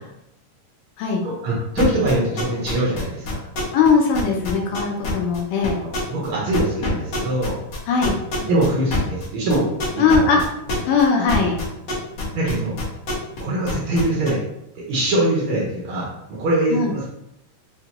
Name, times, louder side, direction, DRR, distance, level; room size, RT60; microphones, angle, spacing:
voice 1, 1.2-3.4 5.8-7.6 8.4-9.7 10.3-10.4 12.3-12.8 13.4-14.4 14.8-17.1, right 1 dB, 90° right, -5 dB, 1.2 m, -23 dB
sound 1, 1.8-3.9 4.1-5.4 5.6-6.3 6.5-13.4 13.7-14.3, left 3 dB, 60° left, 1.2 m, -26 dB
voice 2, 3.7-5.8 7.9-8.1 10.0-10.4 10.9-11.6 16.7-16.9, left 5 dB, 80° left, 0 dB, 2.1 m, -19 dB
5.6 x 2.2 x 2.9 m, 0.82 s
omnidirectional pair, 3.7 m